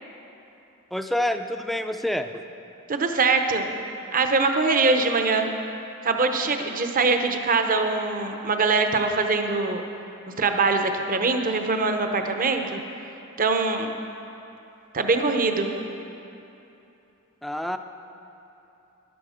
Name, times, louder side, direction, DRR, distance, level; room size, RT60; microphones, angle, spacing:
voice 1, 0.9-2.4 17.4-17.8, left 1 dB, ahead, 7 dB, 0.4 m, -27 dB
voice 2, 2.9-3.7 4.1-5.5 6.0-9.8 10.4-12.8 13.4-13.9 14.9-15.7, right 3 dB, 40° right, 5 dB, 0.8 m, -23 dB
14.0 x 11.0 x 5.0 m, 2.9 s
head